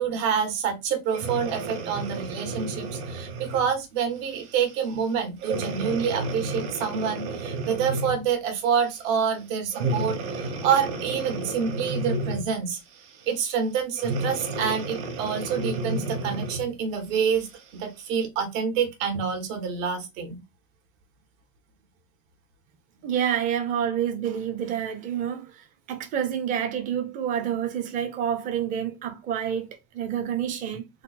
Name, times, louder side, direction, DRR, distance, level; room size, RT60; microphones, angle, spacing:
voice 1, 0.0-12.8 13.3-17.5 17.7-20.4, right 7 dB, 80° right, 1.4 m, -27 dB
Breathing, 1.1-3.7 4.4-4.6 5.4-8.3 9.7-12.6 14.0-16.7 17.3-17.4, right 2 dB, 60° right, 1.3 m, -31 dB
voice 2, 23.0-31.0, right 9 dB, 20° right, 0.4 m, -28 dB
3.8 x 2.0 x 4.0 m
cardioid pair, 170°, 39 cm